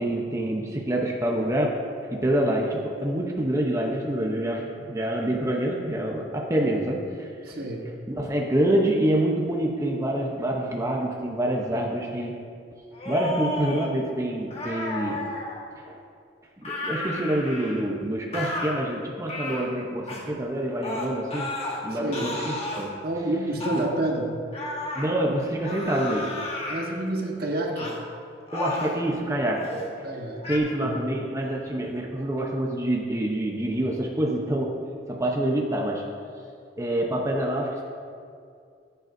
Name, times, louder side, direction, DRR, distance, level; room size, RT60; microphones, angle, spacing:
voice 1, 0.0-1.7 2.1-7.3 8.2-12.3 13.0-15.3 15.9-16.0 16.6-21.5 21.8-23.0 24.9-26.4 28.5-29.7 30.5-34.8 35.1-36.0 36.8-37.8, right 1 dB, 15° right, -1 dB, 0.8 m, -26 dB
voice 2, 7.4-7.8 21.9-22.3 23.0-24.3 26.7-27.9 30.0-30.4 30.8-31.2, right 1 dB, 60° right, 0 dB, 1.3 m, -29 dB
sound 1, 12.9-13.9 14.5-15.6 16.6-17.9 18.3-18.7 19.3-19.7 20.1-20.2 20.8-21.8 22.1-22.9 23.6-23.9 24.5-25.1 25.6-26.8 27.8-28.0 28.5-29.0 29.5-29.9 30.4-30.6, left 2 dB, 35° left, 1.6 m, -33 dB
14.5 x 9.1 x 2.7 m, 2.3 s
head